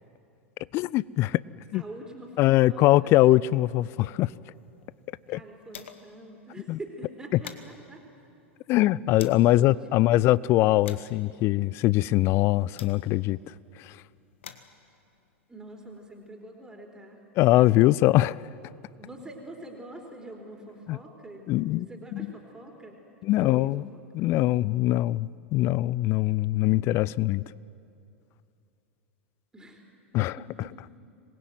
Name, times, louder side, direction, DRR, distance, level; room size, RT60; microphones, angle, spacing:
voice 1, 0.7-1.4 1.7-1.8 2.4-4.3 5.3-5.4 6.7-6.8 8.7-13.4 13.8-14.0 17.4-18.4 20.9-21.0 21.5-21.9 22.1-22.3 23.2-23.8 24.1-27.4 30.1-30.4, left 16 dB, 35° left, 0.5 m, -22 dB
voice 2, 1.7-3.2 5.3-8.0 9.5-10.2 10.6-10.8 15.5-17.2 19.0-23.0 23.3-24.0 26.7-26.8 29.5-29.8 30.4-30.7, right 1 dB, 10° right, 4.1 m, -45 dB
sound 1, 4.4-6.2 6.6-6.7 7.0-9.5 10.2-13.4 14.1-16.3, left 8 dB, 65° left, 1.6 m, -50 dB
26.0 x 21.0 x 9.2 m
figure-of-eight pair, 85°, 7 cm